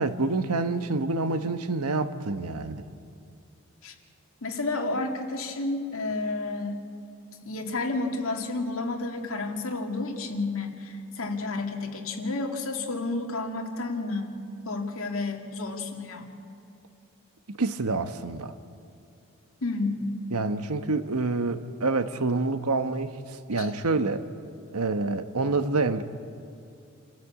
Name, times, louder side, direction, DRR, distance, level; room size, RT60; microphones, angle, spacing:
voice 1, 0.0-2.8 17.5-18.5 20.3-23.2 23.5-24.2 24.7-26.0, right 3 dB, 90° right, 10 dB, 1.1 m, -27 dB
voice 2, 4.4-6.8 7.4-14.4 14.7-16.3 19.6-20.2 23.6-23.7, left 3 dB, 65° left, 2 dB, 2.3 m, -31 dB
28.0 x 14.0 x 8.4 m, 2.6 s
head